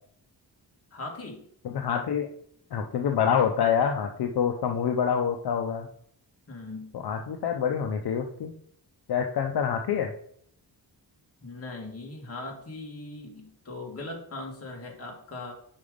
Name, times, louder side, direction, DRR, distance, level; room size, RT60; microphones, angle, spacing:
voice 1, 0.9-1.4 6.5-6.9 11.4-15.5, left 2 dB, 35° left, 0 dB, 1.5 m, -39 dB
voice 2, 1.6-2.3 2.7-5.9 6.9-8.5 9.1-10.1, left 7 dB, 65° left, 5 dB, 0.6 m, -26 dB
5.5 x 4.9 x 5.0 m, 0.65 s
wide cardioid pair, 170°, 42 cm